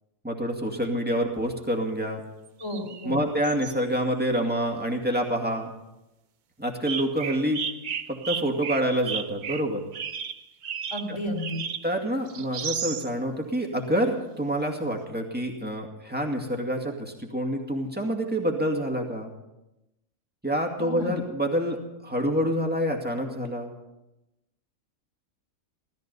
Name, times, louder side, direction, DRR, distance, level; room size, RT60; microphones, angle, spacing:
voice 1, 0.2-2.2 3.0-5.7 6.6-7.6 8.1-9.8 11.1-11.2 11.8-19.3 20.4-21.8 22.0-23.7, equal, 5° right, 1 dB, 2.2 m, -27 dB
sound 1, 2.5-3.2 3.4-3.7 6.9-11.9 12.3-13.1 13.9-14.0, right 7 dB, 50° right, 0.6 m, -34 dB
voice 2, 2.6-3.2 10.9-11.6 20.8-21.1, equal, 20° left, 0 dB, 2.8 m, -32 dB
17.0 x 13.5 x 5.5 m, 0.95 s
omnidirectional pair, 1.4 m